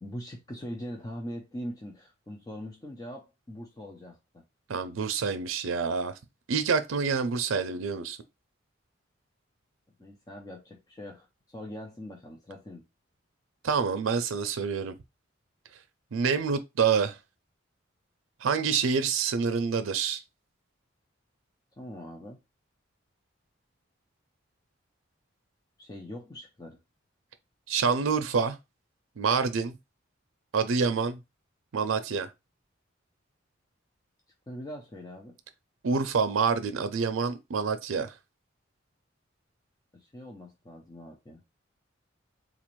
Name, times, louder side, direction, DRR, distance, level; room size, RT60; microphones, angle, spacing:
voice 1, 0.0-4.4 10.0-12.8 21.8-22.4 25.8-26.8 34.5-35.4 39.9-41.4, equal, 20° left, 0.4 m, -42 dB
voice 2, 4.7-6.2 6.5-8.2 13.6-15.0 16.1-17.2 18.4-20.2 27.7-28.6 29.2-29.8 30.5-31.2 31.7-32.3 35.8-38.1, right 5 dB, 85° right, 0.5 m, -27 dB
3.8 x 2.5 x 3.0 m
head